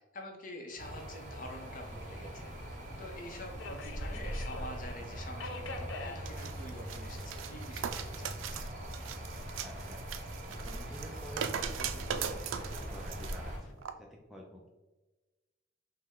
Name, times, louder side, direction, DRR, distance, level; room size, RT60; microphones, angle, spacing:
voice 1, 0.1-2.5 3.0-8.7, left 1 dB, 45° left, 2 dB, 0.7 m, -47 dB
Subway metro underground, 0.7-13.7, left 3 dB, 90° left, 0.5 m, -50 dB
sound 1, 0.8-13.6, right 1 dB, 40° right, 0.6 m, -42 dB
sound 2, 6.2-13.4 13.8-13.9, right 8 dB, 85° right, 0.3 m, -40 dB
voice 2, 9.6-10.0 10.5-14.7, equal, ahead, -1 dB, 0.3 m, -50 dB
5.2 x 2.1 x 3.6 m, 1.1 s
head